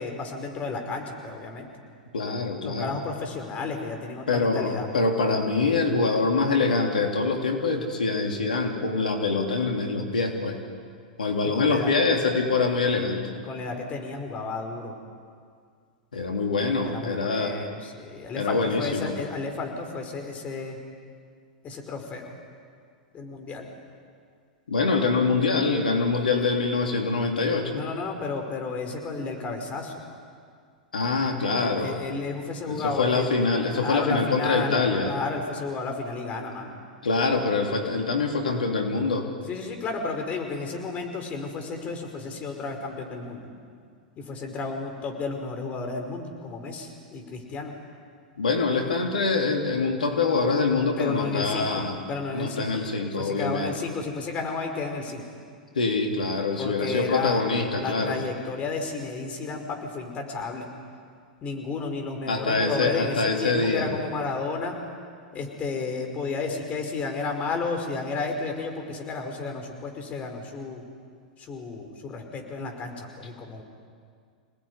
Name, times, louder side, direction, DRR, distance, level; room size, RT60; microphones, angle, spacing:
voice 1, 0.0-1.7 2.6-4.9 11.4-11.9 13.5-14.9 16.8-20.8 21.6-22.3 23.1-23.6 27.7-30.0 31.6-33.3 33.7-36.8 39.5-43.5 44.2-47.7 51.0-51.8 52.1-52.7 53.2-55.2 56.6-57.4 57.8-60.7 61.4-64.7 65.3-70.8 71.4-73.6, left 4 dB, 30° left, 3 dB, 5.3 m, -32 dB
voice 2, 2.1-2.9 4.3-10.6 11.2-13.3 16.1-17.6 18.3-19.1 24.7-27.8 30.9-32.0 32.7-35.1 37.0-39.3 48.4-52.0 52.3-53.7 55.7-58.2 62.3-63.9, left 3 dB, 80° left, 3 dB, 3.3 m, -25 dB
27.5 x 19.5 x 9.9 m, 2.1 s
figure-of-eight pair, 100°, 4 cm